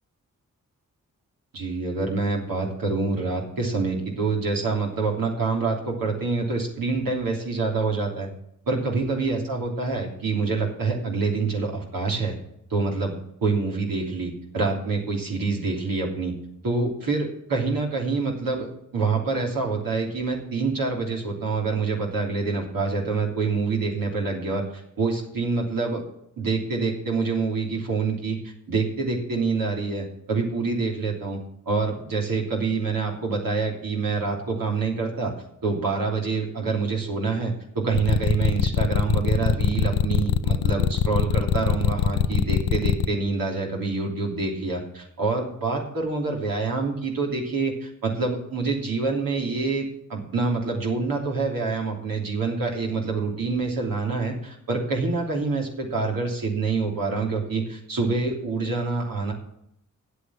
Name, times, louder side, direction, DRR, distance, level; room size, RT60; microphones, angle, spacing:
voice 1, 1.5-8.3 8.7-12.3 12.7-13.1 13.4-16.3 16.6-24.6 25.0-26.0 26.4-31.4 31.6-35.3 35.6-59.3, right 4 dB, 85° right, -1 dB, 3.2 m, -26 dB
sound 1, 37.9-43.1, left 9 dB, 85° left, 0.6 m, -22 dB
9.6 x 8.2 x 7.6 m, 0.75 s
supercardioid pair, 40°, 34 cm